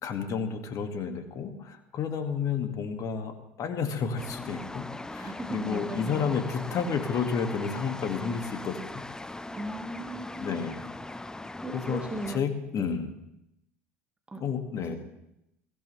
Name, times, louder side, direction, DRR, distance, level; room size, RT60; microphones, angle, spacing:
voice 1, 0.0-8.8 10.4-10.9 11.7-12.0 12.3-13.1 14.4-15.0, left 6 dB, 45° left, 6 dB, 2.2 m, -31 dB
sound 1, 4.2-12.4, left 2 dB, 10° left, 0.6 m, -40 dB
voice 2, 5.2-6.3 9.5-10.6 11.6-12.4 12.8-13.0 14.3-14.4, right 2 dB, 15° right, 3 dB, 1.8 m, -37 dB
21.5 x 15.5 x 3.4 m, 0.84 s
hypercardioid pair, 70°, 8 cm